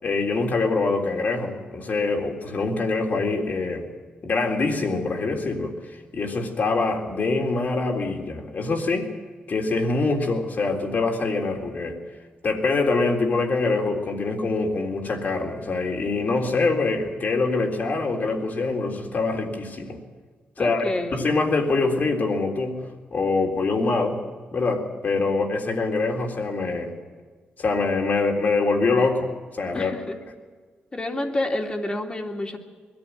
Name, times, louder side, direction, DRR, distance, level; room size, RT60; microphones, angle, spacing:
voice 1, 0.0-3.9 4.2-5.7 6.1-9.1 9.5-12.0 12.4-20.0 20.6-22.8 23.1-24.2 24.5-26.9 27.6-29.3 29.6-29.9, left 3 dB, 55° left, 2 dB, 3.6 m, -24 dB
voice 2, 20.6-21.3 29.7-30.2 30.9-32.6, left 1 dB, 25° left, 2 dB, 3.0 m, -29 dB
21.5 x 14.0 x 9.2 m, 1.5 s
cardioid pair, 80°, 4 cm